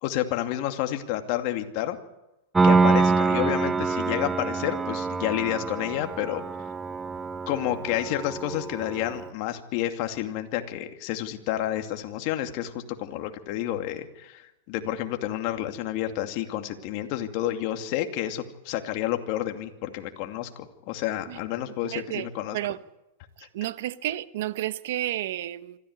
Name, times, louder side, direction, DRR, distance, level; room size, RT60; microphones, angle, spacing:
voice 1, 0.0-2.0 2.6-6.7 7.5-22.6, left 12 dB, 50° left, 2.5 m, -30 dB
Piano, 2.6-9.3, right 4 dB, 10° right, 0.9 m, -25 dB
voice 2, 21.8-22.3 22.5-22.8 23.4-25.8, right 14 dB, 65° right, 1.2 m, -31 dB
25.5 x 14.5 x 9.6 m
hypercardioid pair, 135°, 0 cm